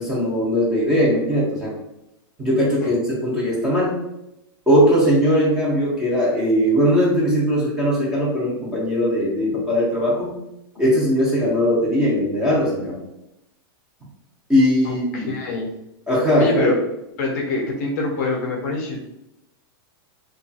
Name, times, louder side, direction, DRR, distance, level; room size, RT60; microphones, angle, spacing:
voice 1, 0.0-1.7 2.4-4.0 4.7-10.4 10.8-13.0 14.5-15.3 16.1-16.8, equal, 5° right, -6 dB, 0.6 m, -19 dB
voice 2, 14.8-15.7 16.4-16.7 17.2-19.0, left 2 dB, 40° left, 0 dB, 0.5 m, -25 dB
2.8 x 2.3 x 2.7 m, 0.88 s
supercardioid pair, 170°, 13 cm